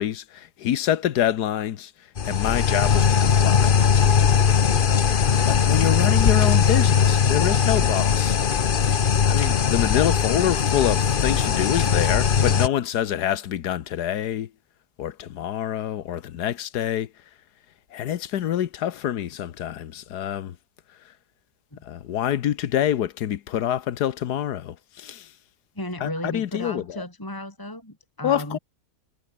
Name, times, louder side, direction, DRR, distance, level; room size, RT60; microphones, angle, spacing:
voice 1, 0.0-1.9 2.2-3.7 5.5-8.4 9.2-14.5 15.0-17.1 17.9-20.6 21.8-25.3 26.0-27.0 28.2-28.6, left 11 dB, 85° left, 1.5 m, -26 dB
sound 1, 2.2-12.7, left 7 dB, 40° left, 0.9 m, -20 dB
voice 2, 25.7-28.6, left 1 dB, 15° left, 3.1 m, -34 dB
omnidirectional pair, 1.7 m